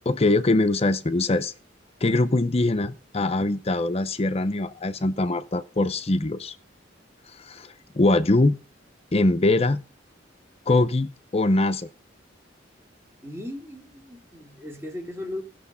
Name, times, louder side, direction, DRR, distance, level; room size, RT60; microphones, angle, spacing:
voice 1, 0.1-1.5 2.0-6.6 7.4-8.6 9.1-9.8 10.7-11.9, left 2 dB, 35° left, 0.6 m, -22 dB
voice 2, 13.2-15.4, left 1 dB, 15° right, 2.8 m, -37 dB
17.0 x 6.8 x 5.6 m
head